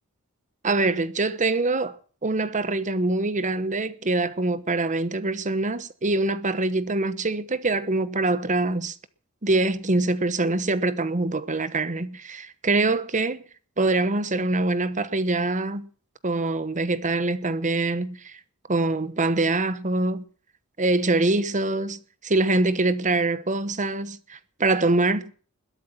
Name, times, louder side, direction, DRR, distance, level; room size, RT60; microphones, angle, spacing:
voice 1, 0.6-8.9 9.4-13.4 13.8-15.9 16.2-18.4 18.7-20.2 20.8-25.3, right 2 dB, 35° right, 1.1 m, -24 dB
21.0 x 8.2 x 7.4 m
head